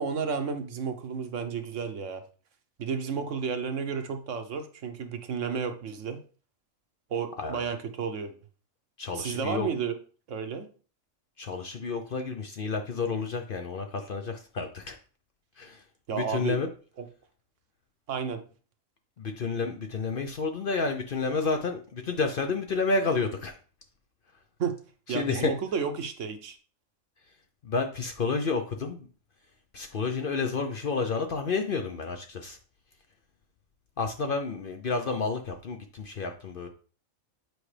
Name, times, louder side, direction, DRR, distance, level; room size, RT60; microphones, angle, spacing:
voice 1, 0.0-2.2 2.8-6.2 7.1-8.3 9.1-10.0 10.3-10.7 16.1-16.6 17.0-17.1 18.1-18.4 24.6-24.8 25.1-26.6, right 6 dB, 70° right, 7 dB, 1.1 m, -32 dB
voice 2, 9.0-9.7 11.4-15.0 15.6-15.8 16.1-16.7 19.2-23.6 25.1-25.5 27.6-29.1 29.7-32.6 34.0-36.7, left 4 dB, 50° left, 5 dB, 0.7 m, -30 dB
7.9 x 4.9 x 3.3 m, 0.39 s
omnidirectional pair, 1.4 m